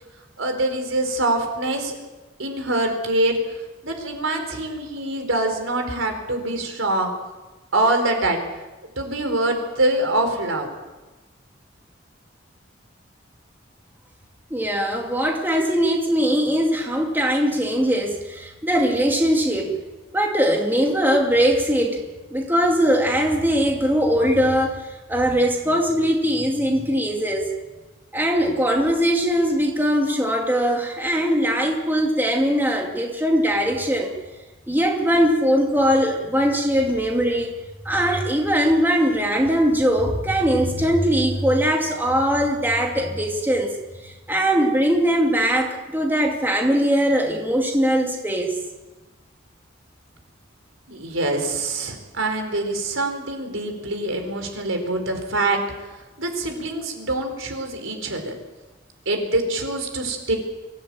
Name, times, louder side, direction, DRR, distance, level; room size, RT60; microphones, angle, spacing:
voice 1, 0.4-2.0 2.4-3.4 3.8-7.1 7.7-8.4 9.0-10.7 50.9-55.6 56.2-58.3 59.1-60.3, right 2 dB, 90° right, 4 dB, 4.4 m, -24 dB
voice 2, 14.5-19.7 20.1-22.0 22.3-24.8 25.1-27.5 28.1-34.1 34.7-37.5 37.8-43.7 44.3-48.5, equal, 10° right, 1 dB, 2.4 m, -21 dB
24.0 x 16.0 x 8.7 m, 1.1 s
head